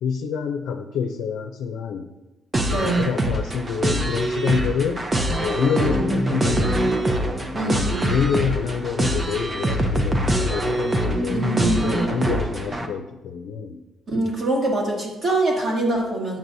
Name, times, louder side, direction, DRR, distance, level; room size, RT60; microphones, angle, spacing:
voice 1, 0.0-2.1 2.7-5.0 5.3-7.0 7.5-11.5 11.8-13.8, left 6 dB, 85° left, 3 dB, 0.5 m, -27 dB
sound 1, 2.5-12.9, right 1 dB, 30° right, 0.8 m, -23 dB
voice 2, 2.7-3.1 7.5-8.1 11.3-11.9 14.1-16.4, right 1 dB, 50° right, -3 dB, 2.2 m, -24 dB
8.8 x 6.0 x 2.7 m, 1.0 s
cardioid pair, 90°, 0 cm